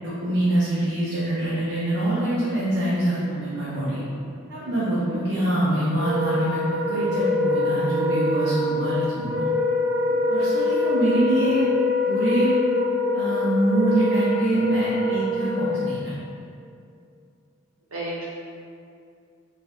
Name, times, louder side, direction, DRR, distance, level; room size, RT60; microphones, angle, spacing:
voice 1, 0.0-4.0 4.5-9.4 10.1-11.7 12.1-12.6 13.1-16.1, right 1 dB, 50° right, -11 dB, 0.9 m, -24 dB
Wind instrument woodwind instrument, 5.9-16.0, left 2 dB, 85° left, 0.8 m, -24 dB
voice 2, 17.9-18.3, right 1 dB, 65° right, -7 dB, 1.2 m, -34 dB
5.5 x 2.7 x 3.5 m, 2.4 s
head